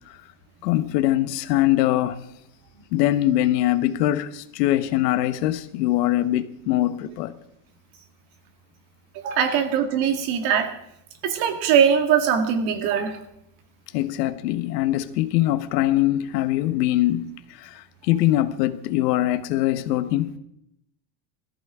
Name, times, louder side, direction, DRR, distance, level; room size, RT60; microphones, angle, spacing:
voice 1, 0.6-2.2 2.9-7.3 13.9-20.3, left 14 dB, 70° left, 1.3 m, -22 dB
voice 2, 9.1-10.7 11.2-13.2, right 8 dB, 45° right, 2.1 m, -21 dB
18.0 x 14.0 x 4.9 m
supercardioid pair, 165°, 49 cm